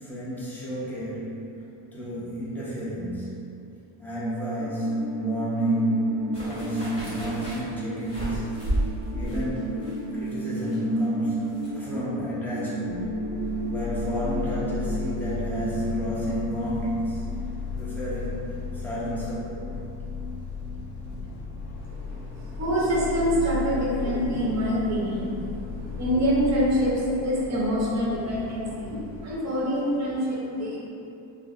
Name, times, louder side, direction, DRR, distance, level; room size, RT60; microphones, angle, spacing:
voice 1, 0.0-1.6 1.9-3.7 4.0-8.6 9.1-13.2 13.7-17.2 17.8-19.7, right 1 dB, 5° left, -9 dB, 0.4 m, -31 dB
sound 1, 4.6-16.5, right 1 dB, 80° right, 0.6 m, -33 dB
sound 2, 6.3-11.7 12.0-12.1, right 1 dB, 30° left, 1.0 m, -33 dB
sound 3, 12.9-29.4, left 5 dB, 80° left, 0.8 m, -35 dB
voice 2, 21.8-30.8, equal, 35° right, -6 dB, 0.7 m, -26 dB
3.4 x 2.6 x 2.4 m, 2.7 s
cardioid pair, 175°, 46 cm